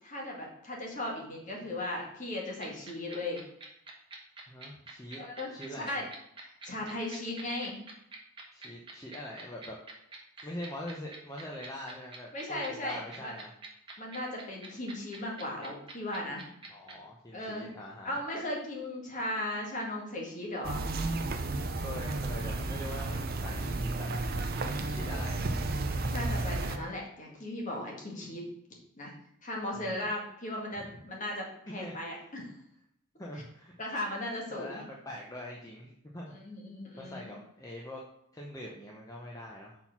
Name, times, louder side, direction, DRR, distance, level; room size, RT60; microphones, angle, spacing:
voice 1, 0.0-3.4 5.2-6.0 6.6-7.8 12.3-13.3 14.0-16.5 17.3-17.7 18.0-20.8 24.8-25.2 26.1-28.5 29.0-29.1 29.4-32.5 33.8-34.8 36.3-37.3, left 1 dB, 35° left, -1 dB, 1.8 m, -37 dB
sound 1, 2.6-16.9, right 4 dB, 20° right, 1.2 m, -45 dB
voice 2, 4.5-5.2 5.5-6.1 8.5-9.8 10.4-13.5 16.7-18.2 21.7-24.1 24.5-25.6 29.7-30.1 30.9-31.0 31.7-32.3 33.2-33.7 34.5-36.4 37.0-38.0 38.3-39.8, left 1 dB, 15° left, -2 dB, 0.7 m, -43 dB
sound 2, 20.6-26.8, right 2 dB, 40° right, 0.6 m, -32 dB
6.2 x 4.4 x 5.8 m, 0.76 s
head